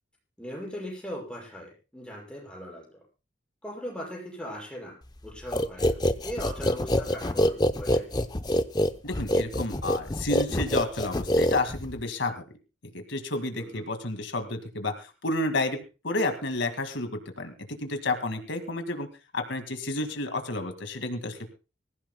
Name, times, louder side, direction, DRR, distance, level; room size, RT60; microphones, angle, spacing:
voice 1, 0.4-3.0 3.6-4.9 5.2-6.0 6.2-8.2 13.5-13.9, equal, 5° left, -3 dB, 6.3 m, -39 dB
sound 1, 5.5-12.0, left 1 dB, 20° left, 0.7 m, -25 dB
voice 2, 9.0-12.4 13.1-15.8 16.0-17.1 17.4-19.1 19.3-21.5, left 2 dB, 85° left, 6 dB, 2.0 m, -30 dB
25.0 x 15.0 x 2.2 m, 0.32 s
head